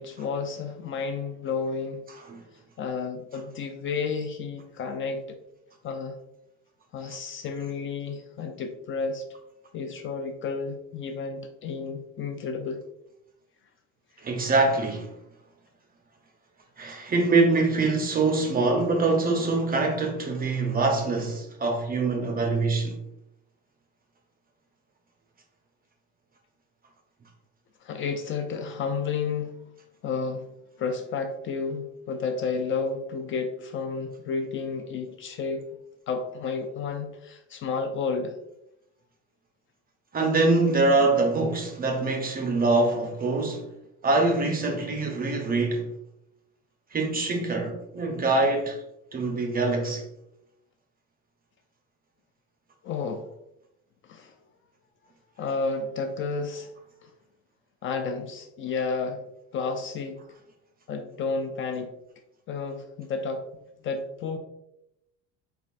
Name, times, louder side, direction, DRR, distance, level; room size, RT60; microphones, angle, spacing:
voice 1, 0.0-2.1 2.8-5.4 5.8-6.2 6.9-9.3 9.7-12.8 27.8-29.6 30.0-30.5 30.8-35.7 36.1-38.4 52.8-53.3 54.0-54.3 55.4-56.7 57.0-57.1 57.8-59.2 59.5-60.2 60.9-61.9 62.5-64.4, left 4 dB, 40° left, 0.4 m, -31 dB
voice 2, 14.2-15.1 16.8-23.0 40.1-43.7 44.0-45.9 46.9-48.8 49.1-50.1, right 3 dB, 25° right, 0.6 m, -24 dB
5.0 x 2.3 x 2.4 m
supercardioid pair, 100°, 33 cm